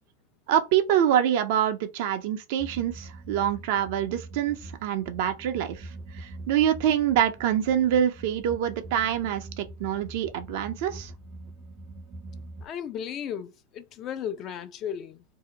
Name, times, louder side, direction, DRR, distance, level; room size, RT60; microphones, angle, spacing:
voice 1, 0.5-5.9 6.1-11.1, right 10 dB, 65° right, 0.5 m, -25 dB
sound 1, 2.6-12.7, right 2 dB, 20° right, 0.6 m, -44 dB
voice 2, 12.6-15.2, left 9 dB, 40° left, 0.4 m, -35 dB
2.7 x 2.1 x 3.8 m
supercardioid pair, 120°, 0 cm